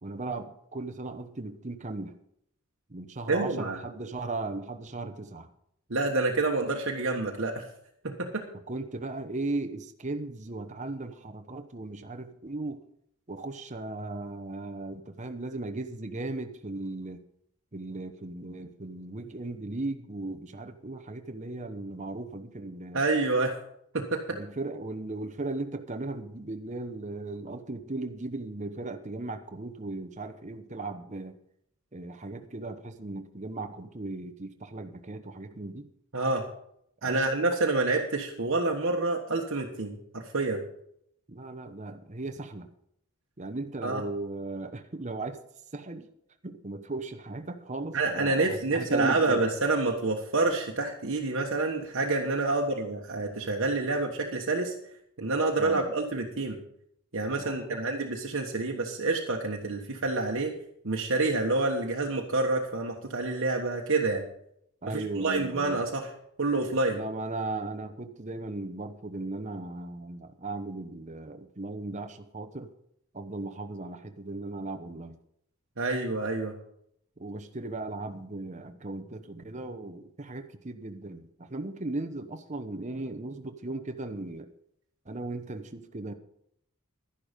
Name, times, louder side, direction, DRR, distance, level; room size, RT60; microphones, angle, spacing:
voice 1, 0.0-2.2 2.9-5.5 8.7-12.8 13.3-17.2 17.7-23.0 24.3-31.3 31.9-35.9 37.0-37.3 41.3-42.7 43.4-45.4 45.7-46.1 46.4-49.5 55.6-55.9 57.4-57.8 64.8-65.9 66.9-72.7 73.1-75.2 77.2-84.5 85.1-86.1, right 2 dB, 30° right, 8 dB, 0.9 m, -37 dB
voice 2, 3.3-3.8 5.9-7.6 8.0-8.5 22.9-23.5 23.9-24.4 36.1-36.5 37.0-40.6 43.8-44.0 47.9-54.7 55.2-56.6 57.1-60.5 60.8-64.2 64.9-66.1 66.4-67.0 75.8-76.5, right 3 dB, 60° right, 0 dB, 1.3 m, -28 dB
12.0 x 11.0 x 5.2 m, 0.71 s
head